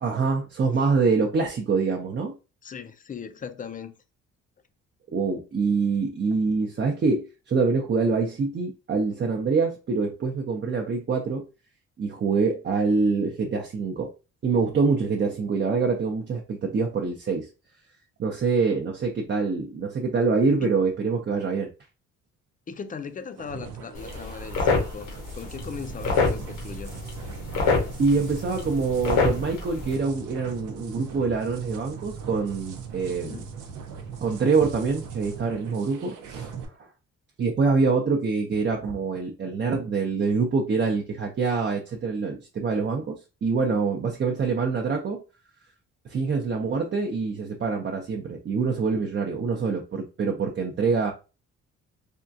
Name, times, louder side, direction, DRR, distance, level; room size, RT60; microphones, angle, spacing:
voice 1, 0.0-2.3 5.1-11.4 12.0-14.1 14.4-17.5 18.2-21.7 28.0-33.4 34.2-36.9 37.4-45.2 46.0-51.1, right 4 dB, 35° right, 0.6 m, -25 dB
voice 2, 2.6-3.9 20.6-20.7 22.7-26.9 33.1-33.5, left 6 dB, 30° left, 0.4 m, -38 dB
sound 1, 23.4-36.6, right 6 dB, 85° right, 0.7 m, -40 dB
sound 2, 23.9-29.9, left 4 dB, 85° left, 1.0 m, -27 dB
3.5 x 2.3 x 2.6 m
cardioid pair, 90°, 30 cm